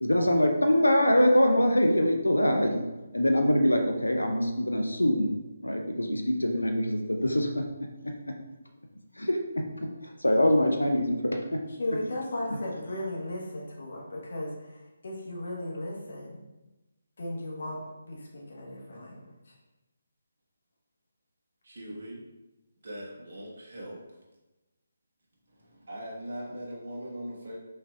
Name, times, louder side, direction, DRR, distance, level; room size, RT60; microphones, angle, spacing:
voice 1, 0.0-2.8 3.1-5.3 5.6-7.6 8.0-8.1 9.2-9.4 9.8-9.9 10.2-11.6, left 1 dB, 75° left, 4 dB, 0.5 m, -24 dB
voice 2, 11.7-16.4 17.2-19.6, left 1 dB, 50° left, -2 dB, 1.1 m, -36 dB
voice 3, 21.6-22.2 22.8-24.0 25.5-27.6, equal, 45° right, -4 dB, 1.1 m, -40 dB
5.6 x 3.2 x 2.4 m, 1.1 s
figure-of-eight pair, 145°, 0 cm